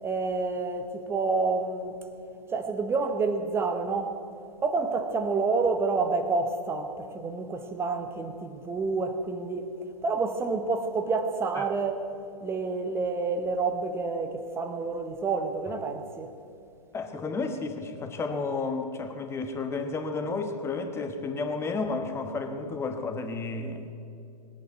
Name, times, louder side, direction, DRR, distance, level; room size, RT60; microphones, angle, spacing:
voice 1, 0.0-1.9 2.5-4.2 4.6-9.7 10.0-12.0 12.4-16.3, right 4 dB, 10° right, 0.9 m, -28 dB
voice 2, 16.9-23.9, left 3 dB, 10° left, 1.2 m, -32 dB
20.0 x 8.9 x 8.1 m
figure-of-eight pair, 125°, 21 cm